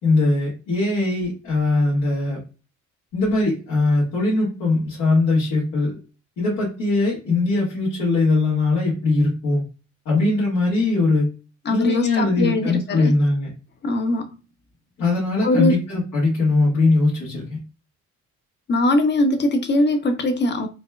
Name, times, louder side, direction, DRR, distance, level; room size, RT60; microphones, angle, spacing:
voice 1, 0.0-2.4 3.1-5.9 6.4-9.6 10.0-11.3 11.7-13.5 15.0-17.6, left 3 dB, 85° left, 1.5 m, -20 dB
voice 2, 11.7-13.1 13.8-14.2 15.4-15.8 18.7-20.7, left 1 dB, 35° left, 0.7 m, -21 dB
4.1 x 2.3 x 2.2 m
cardioid pair, 90°, 30 cm